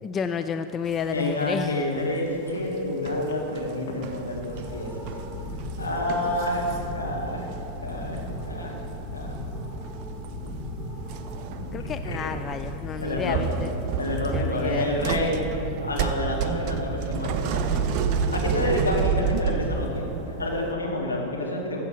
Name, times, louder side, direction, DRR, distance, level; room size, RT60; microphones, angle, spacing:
voice 1, 0.0-1.8 11.7-13.7 14.3-14.9, left 6 dB, 25° left, 9 dB, 0.3 m, -31 dB
sound 1, 1.0-1.6 2.0-7.6 7.8-8.9 9.2-9.4 9.8-10.5 11.0-12.8 13.2-20.7, right 6 dB, 40° right, 0.5 m, -30 dB
voice 2, 1.1-5.1 5.8-7.4 7.8-8.2 8.5-8.7 9.1-9.4 13.0-13.6 14.0-15.4 15.8-21.8, left 1 dB, 80° left, -2 dB, 1.7 m, -29 dB
Telephone, 2.6-3.3 3.9-4.0 5.7-5.9 6.3-6.4 11.7-12.6 19.7-19.9, left 3 dB, 60° left, 1.2 m, -35 dB
sound 2, 4.2-20.2, equal, ahead, 1.4 m, -36 dB
14.5 x 7.1 x 4.9 m, 2.9 s
figure-of-eight pair, 90°, 0 cm